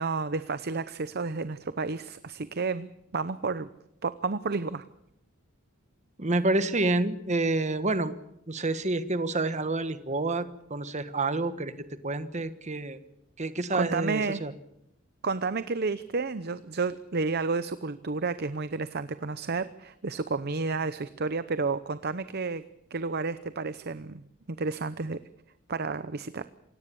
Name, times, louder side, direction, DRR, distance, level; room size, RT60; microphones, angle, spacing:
voice 1, 0.0-3.7 4.0-4.8 13.7-14.4 15.2-22.6 22.9-25.2 25.7-26.4, right 4 dB, 50° right, 13 dB, 0.8 m, -31 dB
voice 2, 6.2-8.1 8.5-10.4 10.7-11.7 12.0-13.0 13.4-14.5, right 2 dB, 35° right, 11 dB, 1.3 m, -28 dB
27.0 x 17.5 x 7.0 m, 0.80 s
head